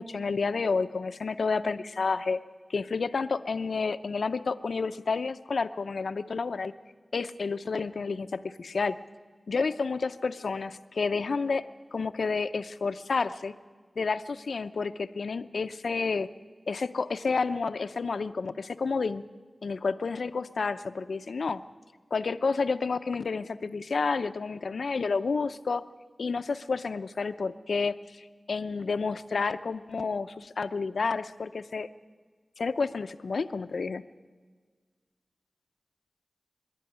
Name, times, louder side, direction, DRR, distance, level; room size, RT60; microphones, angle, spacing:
voice 1, 0.0-2.4 2.7-6.7 7.1-9.0 9.5-11.6 11.9-13.5 14.0-16.3 16.7-19.3 19.6-21.6 22.1-25.8 26.2-31.9 32.6-34.0, left 4 dB, 85° left, 11 dB, 0.6 m, -30 dB
24.0 x 11.0 x 9.9 m, 1.5 s
wide cardioid pair, 55°, 0 cm